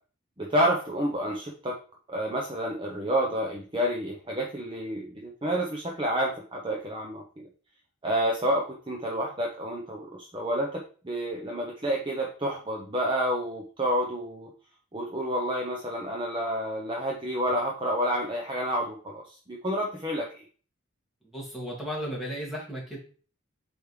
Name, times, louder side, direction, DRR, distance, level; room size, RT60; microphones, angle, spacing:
voice 1, 0.4-1.8 2.1-7.5 8.0-14.5 14.9-20.3, equal, 25° right, -1 dB, 0.8 m, -29 dB
voice 2, 21.2-23.0, equal, ahead, -4 dB, 2.2 m, -35 dB
8.3 x 3.6 x 3.2 m, 0.40 s
head